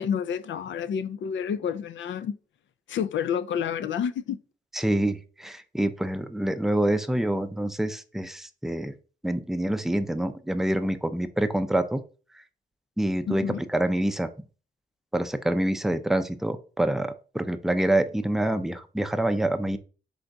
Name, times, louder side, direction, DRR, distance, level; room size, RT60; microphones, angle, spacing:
voice 1, 0.0-2.4 2.9-4.4 13.3-13.6, left 8 dB, 75° left, 0.4 m, -29 dB
voice 2, 4.7-8.9 9.2-12.0 13.0-14.5 15.1-19.8, right 1 dB, ahead, 0.5 m, -26 dB
3.9 x 3.8 x 3.4 m
cardioid pair, 75°, 20 cm